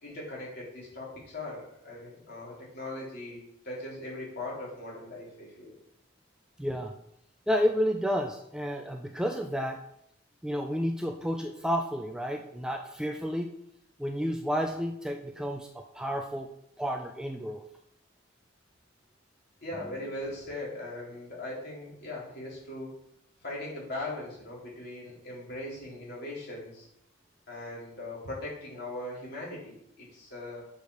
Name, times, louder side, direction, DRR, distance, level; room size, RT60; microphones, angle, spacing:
voice 1, 0.0-3.4 3.6-5.7 19.6-22.9 23.4-26.9 27.5-30.6, left 1 dB, 50° left, -5 dB, 3.6 m, -39 dB
voice 2, 6.6-6.9 7.5-9.8 10.4-13.5 14.0-16.5 16.8-17.6, equal, 5° right, 4 dB, 0.4 m, -31 dB
6.7 x 5.1 x 6.3 m, 0.76 s
head